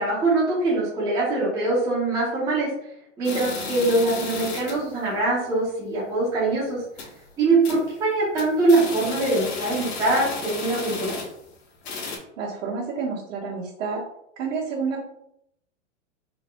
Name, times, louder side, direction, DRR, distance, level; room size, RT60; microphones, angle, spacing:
voice 1, 0.0-2.7 3.2-6.8 7.4-11.2, right 2 dB, 10° right, -7 dB, 0.7 m, -23 dB
sound 1, 3.2-4.9 5.3-5.4 5.7-5.8 6.3-6.4 6.8-7.2 7.6-7.9 8.2-11.5 11.8-12.2, left 4 dB, 60° left, 1.4 m, -33 dB
voice 2, 12.4-14.0 14.4-15.0, right 5 dB, 85° right, -7 dB, 1.5 m, -29 dB
4.3 x 3.9 x 2.3 m, 0.76 s
supercardioid pair, 170°, 37 cm